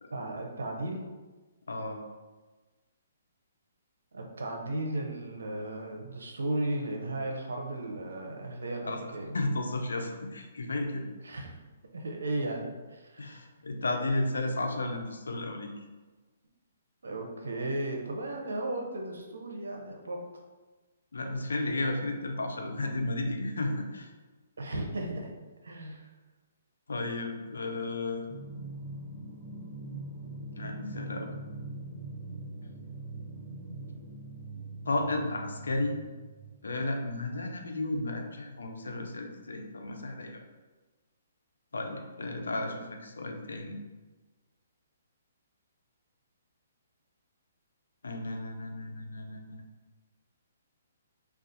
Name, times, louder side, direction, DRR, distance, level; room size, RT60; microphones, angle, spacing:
voice 1, 0.1-1.0 4.1-9.4 11.2-11.5 11.9-13.4 17.0-20.2 24.6-25.3 25.6-26.1, right 1 dB, 85° right, 2 dB, 0.6 m, -35 dB
voice 2, 1.7-2.0 8.9-9.0 9.3-11.1 13.2-15.7 21.1-24.1 26.9-28.2 30.6-31.3 34.9-36.0 36.6-40.4 41.7-43.8 48.0-49.6, left 2 dB, 85° left, 3 dB, 0.5 m, -33 dB
sound 1, 28.3-36.6, right 2 dB, 40° right, 0.5 m, -42 dB
2.4 x 2.3 x 3.9 m, 1.3 s
hypercardioid pair, 140°, 0 cm